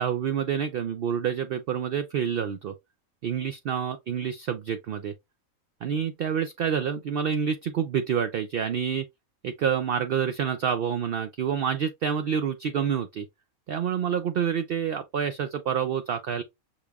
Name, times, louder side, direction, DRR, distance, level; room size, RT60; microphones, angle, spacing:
voice 1, 0.0-2.7 3.2-5.1 5.8-9.1 9.4-13.3 13.7-16.4, right 8 dB, 65° right, 0.5 m, -28 dB
6.4 x 2.3 x 3.4 m
omnidirectional pair, 1.5 m